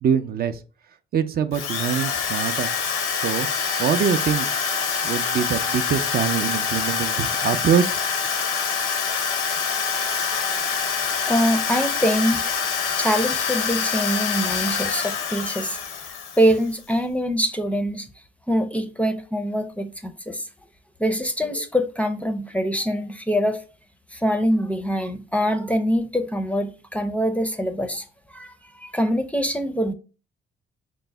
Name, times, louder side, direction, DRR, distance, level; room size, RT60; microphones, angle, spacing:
voice 1, 0.0-0.6 1.1-2.7 3.2-3.5 3.8-4.5 5.0-8.0, right 8 dB, 50° right, 0.4 m, -23 dB
Drill, 1.5-16.7, left 6 dB, 85° left, 0.6 m, -25 dB
voice 2, 11.3-12.5 13.0-15.8 16.4-18.1 18.5-20.5 21.0-23.6 24.1-29.9, equal, 5° left, 0.5 m, -24 dB
5.2 x 2.0 x 3.3 m
cardioid pair, 90°, 20 cm